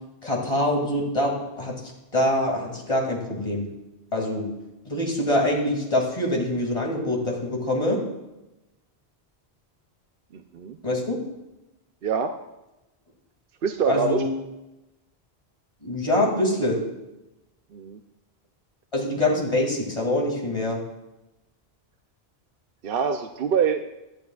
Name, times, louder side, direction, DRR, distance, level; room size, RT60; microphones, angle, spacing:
voice 1, 0.2-1.7 2.1-3.6 4.1-4.4 4.9-8.0 10.8-11.2 13.8-14.3 15.8-16.8 18.9-20.8, left 1 dB, 30° left, -1 dB, 2.6 m, -24 dB
voice 2, 10.3-10.8 12.0-12.3 13.6-14.2 17.7-18.0 22.8-23.8, right 6 dB, 65° right, 6 dB, 0.8 m, -25 dB
17.0 x 12.0 x 2.4 m, 0.98 s
omnidirectional pair, 1.1 m